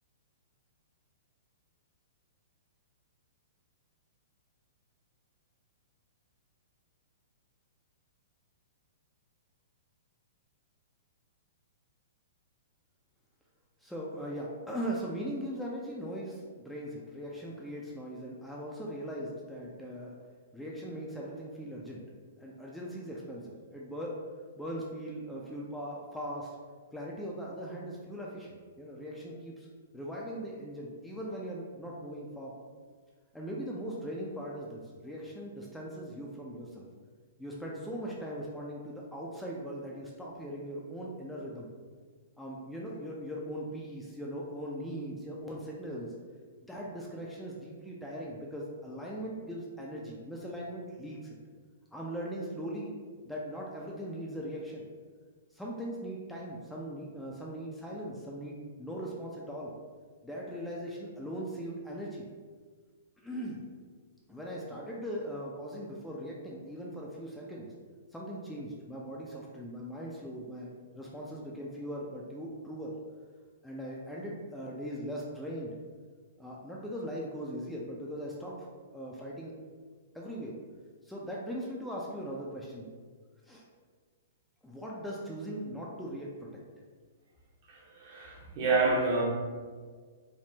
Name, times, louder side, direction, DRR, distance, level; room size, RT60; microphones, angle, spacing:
voice 1, 13.8-20.1 20.5-22.0 22.4-24.2 24.6-26.5 26.9-29.7 29.9-32.5 33.3-36.8 37.4-41.7 42.4-46.1 46.6-51.4 51.9-53.0 53.2-54.8 55.5-59.7 60.2-62.3 63.2-63.6 64.3-67.7 68.1-70.7 71.0-72.9 73.6-75.7 76.4-78.7 78.9-79.5 80.1-80.5 81.0-82.9 83.5-83.6 84.6-86.5, equal, 5° left, -4 dB, 0.4 m, -39 dB
voice 2, 87.7-89.2, right 3 dB, 50° right, -4 dB, 0.9 m, -28 dB
3.5 x 2.0 x 2.7 m, 1.6 s
hypercardioid pair, 115°, 0 cm